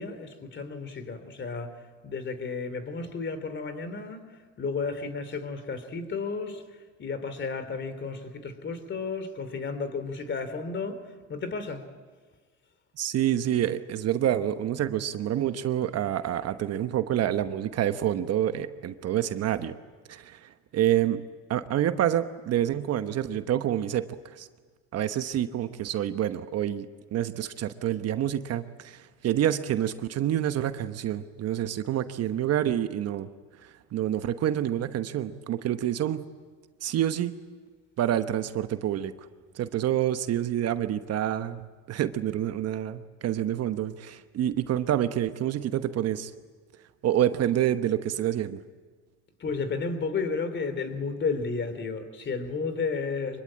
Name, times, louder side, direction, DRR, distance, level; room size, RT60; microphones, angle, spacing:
voice 1, 0.0-4.3 4.6-6.6 7.0-11.0 11.3-11.8 49.4-53.4, left 4 dB, 35° left, 3.0 m, -32 dB
voice 2, 13.0-19.8 20.1-21.2 21.5-24.5 24.9-33.3 33.6-36.3 36.8-37.3 38.0-39.1 39.5-46.3 47.0-48.6, right 11 dB, 50° right, 1.1 m, -27 dB
24.5 x 21.5 x 8.8 m
supercardioid pair, 100°, 33 cm